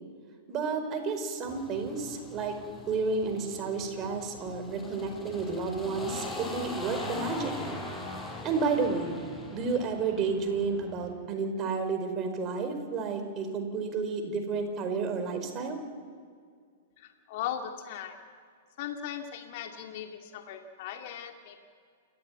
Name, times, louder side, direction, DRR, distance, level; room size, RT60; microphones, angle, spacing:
voice 1, 0.5-2.6 2.9-7.5 8.4-9.2 9.5-15.8, right 4 dB, 30° right, 6 dB, 4.8 m, -31 dB
sound 1, 1.4-11.1, left 2 dB, 10° left, 5.7 m, -41 dB
voice 2, 17.0-18.2 18.8-21.7, left 9 dB, 50° left, 4 dB, 2.2 m, -38 dB
28.0 x 14.5 x 9.3 m, 2.1 s
figure-of-eight pair, 110°, 0 cm